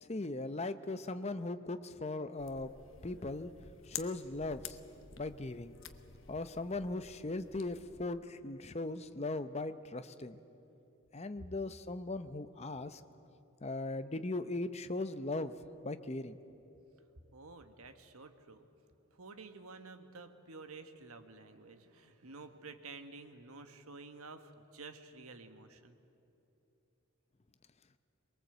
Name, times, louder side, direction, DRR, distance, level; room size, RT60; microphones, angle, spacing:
voice 1, 0.0-2.7 3.0-3.5 3.9-4.8 5.2-5.7 6.3-10.4 11.1-13.0 13.6-15.6 15.8-16.4, left 2 dB, 30° left, 11 dB, 0.7 m, -39 dB
sound 1, 2.4-8.1, left 9 dB, 60° left, 1.0 m, -50 dB
voice 2, 17.3-18.7 19.1-26.0, right 3 dB, 85° right, 8 dB, 1.4 m, -51 dB
23.0 x 21.5 x 8.0 m, 2.8 s
head